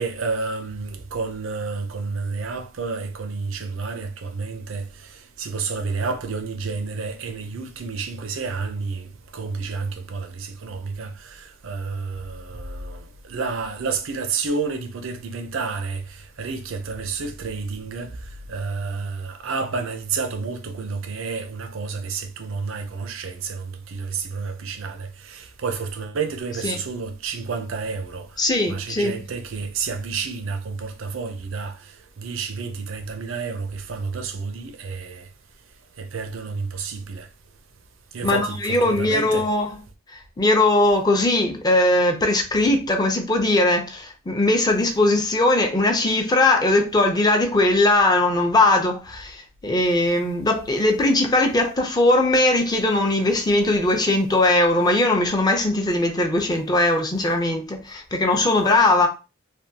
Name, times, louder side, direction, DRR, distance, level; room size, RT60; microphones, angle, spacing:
voice 1, 0.0-4.9 5.4-18.1 18.5-28.3 28.7-31.8 32.2-35.2 36.0-37.3 38.1-39.5, right 4 dB, 90° right, 0.5 m, -30 dB
voice 2, 28.4-29.2 38.2-39.7 40.4-59.1, left 2 dB, 20° left, 0.6 m, -20 dB
3.4 x 2.3 x 2.7 m
head